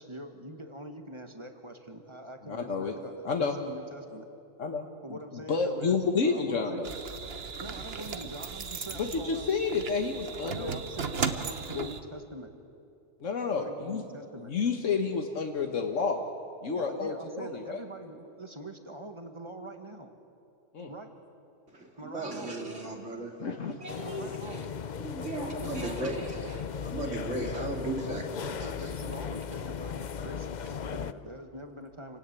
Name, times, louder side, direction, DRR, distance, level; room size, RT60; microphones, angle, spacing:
voice 1, 0.0-4.3 5.0-6.0 6.2-7.0 7.6-9.5 10.4-12.5 13.6-14.5 16.7-20.1 20.8-21.1 22.0-22.6 24.0-24.7 25.2-26.3 28.6-32.2, right 1 dB, 25° right, 5 dB, 1.7 m, -44 dB
voice 2, 2.4-2.9 3.2-3.6 4.6-6.9 8.9-10.8 11.7-11.9 13.2-14.0 14.4-16.2 16.6-17.8 20.7-20.9 23.4-23.7, left 5 dB, 80° left, 4 dB, 1.7 m, -30 dB
sound 1, 6.8-12.0, right 5 dB, 55° right, 1.3 m, -36 dB
voice 3, 21.7-23.3 23.8-24.7 25.0-28.7, right 2 dB, 70° right, 1 dB, 3.5 m, -36 dB
sound 2, 23.9-31.1, left 7 dB, 45° left, 0.6 m, -37 dB
27.5 x 18.5 x 8.4 m, 2.6 s
omnidirectional pair, 1.3 m